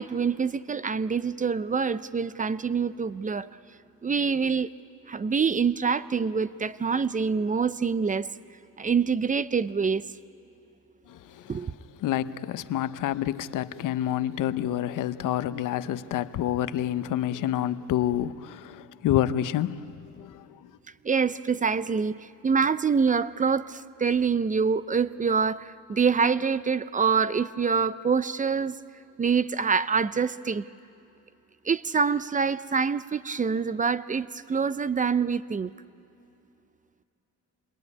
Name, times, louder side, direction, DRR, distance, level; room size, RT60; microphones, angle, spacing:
voice 1, 0.0-3.5 4.0-4.7 5.1-8.3 8.8-10.0 11.5-11.7 21.0-28.8 29.2-30.6 31.6-35.7, right 5 dB, 25° right, 0.5 m, -25 dB
voice 2, 11.1-11.5 12.0-20.7, left 12 dB, 75° left, 0.9 m, -28 dB
27.5 x 22.0 x 9.6 m
cardioid pair, 105°, 32 cm